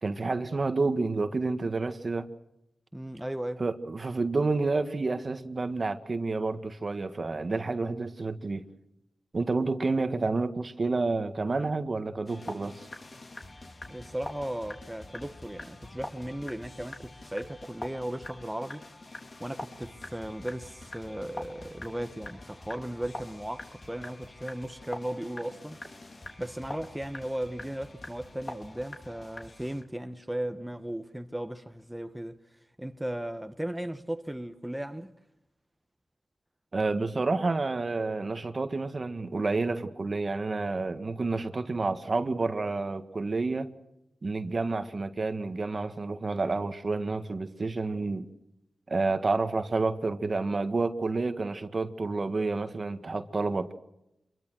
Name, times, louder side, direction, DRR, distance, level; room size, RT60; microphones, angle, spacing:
voice 1, 0.0-2.3 3.6-8.6 9.3-12.9 36.7-43.7 44.2-48.3 48.9-53.8, right 3 dB, 45° right, 1.7 m, -29 dB
voice 2, 2.9-3.6 13.9-18.8 19.4-25.8 26.4-32.4 32.8-35.1, right 1 dB, 5° right, 1.5 m, -36 dB
sound 1, 12.3-29.8, left 2 dB, 45° left, 3.7 m, -44 dB
26.5 x 22.5 x 6.4 m
cardioid pair, 65°, 0 cm